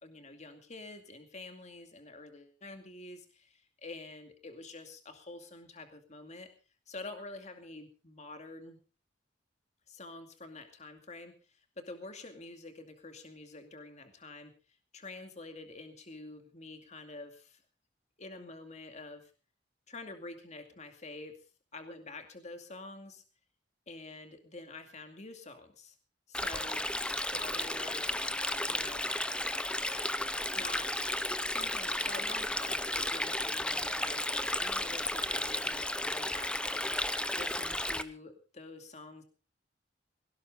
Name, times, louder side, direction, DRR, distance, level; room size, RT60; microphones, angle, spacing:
voice 1, 0.0-6.5 6.9-8.8 9.9-14.5 14.9-17.6 18.2-19.3 19.9-21.3 21.7-23.2 23.9-26.0 26.3-26.8 27.3-28.1 28.7-29.0 30.5-39.2, left 2 dB, 40° left, 6 dB, 2.4 m, -47 dB
Stream, 26.3-38.0, left 1 dB, 5° left, 0.7 m, -33 dB
18.0 x 17.5 x 3.8 m, 0.35 s
head